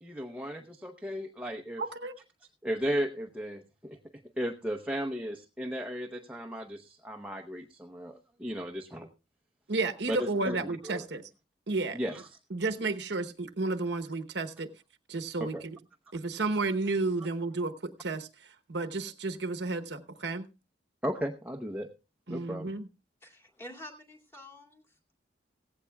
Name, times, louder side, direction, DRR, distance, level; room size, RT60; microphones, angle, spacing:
voice 1, 0.0-1.8 2.6-4.0 4.4-9.1 10.1-11.1 11.9-12.3 15.4-15.6 21.0-21.9 22.3-22.7, equal, 5° right, 4 dB, 0.8 m, -35 dB
voice 2, 1.8-2.1 9.7-11.2 11.7-12.0 12.5-14.7 15.1-15.8 16.1-20.5 22.3-22.9, right 3 dB, 65° right, 8 dB, 1.0 m, -32 dB
voice 3, 23.2-24.8, left 1 dB, 15° left, 4 dB, 2.3 m, -48 dB
17.0 x 15.5 x 2.3 m, 0.29 s
head